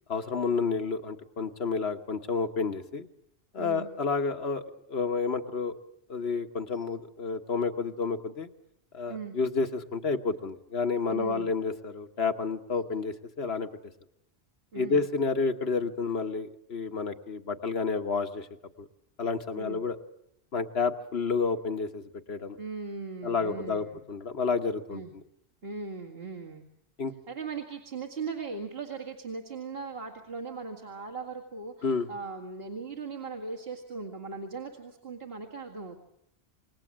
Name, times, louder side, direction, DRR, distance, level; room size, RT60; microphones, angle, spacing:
voice 1, 0.1-3.1 3.5-4.6 4.9-5.7 6.1-8.5 8.9-13.7 14.7-18.5 19.2-20.0 20.5-22.6 23.2-25.0 27.0-27.1 31.8-32.1, left 4 dB, 70° left, 6 dB, 1.6 m, -30 dB
voice 2, 3.6-3.9 9.1-9.3 11.1-11.5 14.7-15.1 19.5-19.8 22.6-24.0 24.9-25.1 25.6-26.6 27.3-36.0, right 4 dB, 65° right, -2 dB, 2.3 m, -39 dB
27.5 x 20.5 x 7.5 m, 0.74 s
omnidirectional pair, 1.1 m